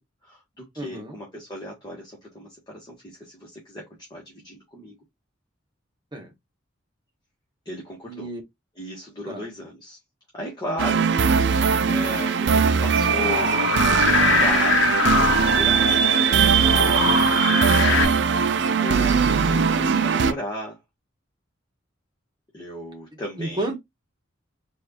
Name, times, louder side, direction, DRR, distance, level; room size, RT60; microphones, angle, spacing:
voice 1, 0.2-3.8 4.1-5.0 7.6-8.3 8.7-10.0 10.3-11.1 11.9-16.1 17.3-18.0 18.8-20.8 22.5-23.7, equal, 20° left, 1.5 m, -36 dB
voice 2, 0.8-1.1 6.1-6.3 8.1-8.4 9.3-9.4 23.4-23.8, right 2 dB, 25° right, 1.4 m, -32 dB
sound 1, 10.8-20.3, right 6 dB, 65° right, 0.4 m, -20 dB
sound 2, 13.1-18.1, left 4 dB, 75° left, 0.9 m, -23 dB
4.6 x 2.7 x 2.9 m
head